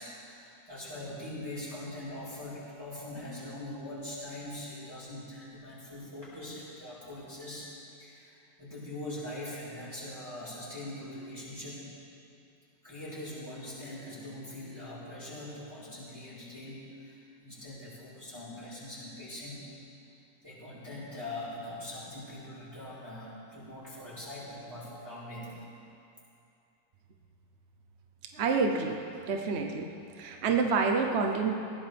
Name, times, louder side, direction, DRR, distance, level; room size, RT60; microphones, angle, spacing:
voice 1, 0.0-7.7 8.0-11.8 12.8-19.6 20.4-25.5, left 1 dB, 10° right, -12 dB, 4.2 m, -42 dB
voice 2, 28.3-29.0 29.3-29.9 30.2-31.6, right 4 dB, 55° right, 3 dB, 0.7 m, -28 dB
21.0 x 15.5 x 3.5 m, 2.6 s
omnidirectional pair, 2.3 m